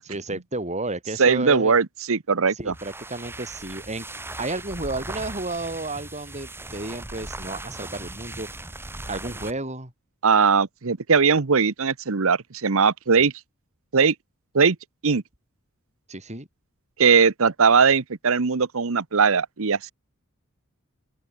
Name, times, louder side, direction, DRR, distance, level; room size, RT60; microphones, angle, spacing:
voice 1, 0.1-1.8 2.5-4.1 4.4-8.5 9.1-9.9 16.1-16.5, right 2 dB, 30° right, 7.0 m, -32 dB
voice 2, 1.2-2.7 10.2-13.3 13.9-14.1 14.5-14.8 15.0-15.2 17.0-19.9, right 5 dB, 65° right, 0.9 m, -20 dB
sound 1, 2.6-9.6, right 2 dB, 10° right, 1.6 m, -38 dB
open air
head